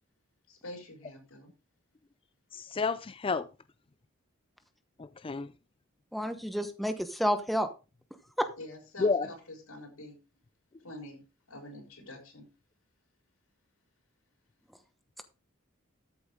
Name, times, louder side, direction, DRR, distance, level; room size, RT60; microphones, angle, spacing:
voice 1, 0.5-1.5 8.6-9.1 9.5-10.2 10.8-11.2 11.5-12.5, left 1 dB, 90° left, 6.2 m, -46 dB
voice 2, 2.5-3.5 5.0-5.5 9.0-9.3, left 4 dB, 25° left, 0.4 m, -30 dB
voice 3, 6.1-7.7 8.4-8.5, equal, ahead, 1.0 m, -30 dB
13.5 x 8.0 x 3.7 m
head